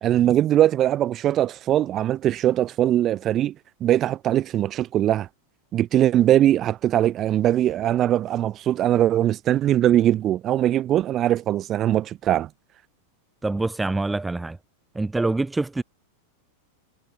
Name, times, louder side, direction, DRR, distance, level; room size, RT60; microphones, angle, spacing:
voice 1, 0.0-3.5 3.8-5.3 5.7-12.5, right 12 dB, 30° right, 1.0 m, -21 dB
voice 2, 13.4-14.6 15.0-15.8, right 2 dB, 10° right, 0.4 m, -25 dB
figure-of-eight pair, 90°, 0 cm